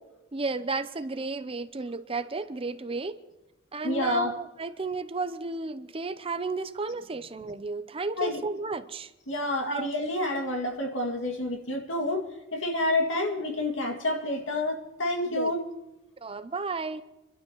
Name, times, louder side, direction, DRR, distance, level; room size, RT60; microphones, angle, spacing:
voice 1, 0.3-3.2 3.7-9.1 9.7-9.9 15.3-15.5 16.2-17.0, right 3 dB, 30° right, 0.7 m, -33 dB
voice 2, 3.8-4.3 8.2-8.4 9.3-12.2 12.5-15.6, left 1 dB, 75° left, 2.3 m, -28 dB
27.5 x 12.5 x 3.1 m
head